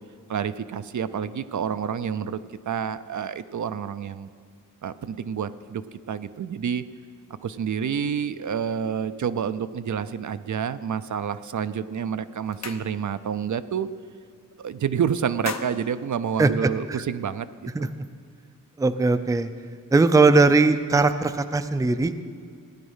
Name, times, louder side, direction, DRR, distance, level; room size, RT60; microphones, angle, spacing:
voice 1, 0.3-2.4 2.7-4.3 4.8-6.8 7.4-13.9 14.6-17.5 17.8-17.9, right 7 dB, 65° right, 12 dB, 0.5 m, -28 dB
sound 1, 12.3-13.3 13.7-13.9 14.2-14.8 15.1-17.0, left 5 dB, 55° left, 0.8 m, -39 dB
voice 2, 18.8-19.5 19.9-22.3, right 3 dB, 10° right, 10 dB, 0.4 m, -20 dB
15.5 x 9.7 x 5.6 m, 2.1 s
wide cardioid pair, 130°, 32 cm